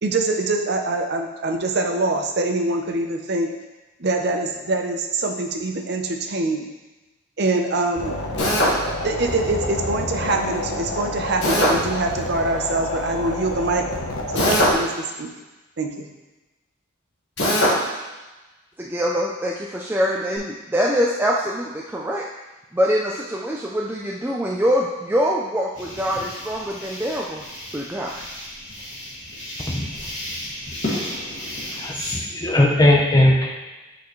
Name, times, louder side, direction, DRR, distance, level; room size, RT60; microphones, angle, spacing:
voice 1, 0.0-3.5 4.0-6.7 7.4-8.2 9.0-13.8 14.3-15.3 15.8-16.1, right 2 dB, 50° right, 3 dB, 0.6 m, -24 dB
sound 1, 8.0-14.7, left 1 dB, 80° left, 0.9 m, -28 dB
Drill, 8.4-8.8 11.4-11.8 14.4-14.8 17.4-17.8, equal, 55° left, 1.4 m, -19 dB
voice 2, 18.8-22.2 22.7-27.4 27.7-28.1, equal, 10° right, -3 dB, 0.3 m, -24 dB
sound 2, 25.7-32.1, left 1 dB, 35° left, 2.0 m, -33 dB
voice 3, 31.8-33.5, left 1 dB, 20° left, -1 dB, 0.7 m, -18 dB
8.2 x 4.2 x 3.1 m, 1.1 s
head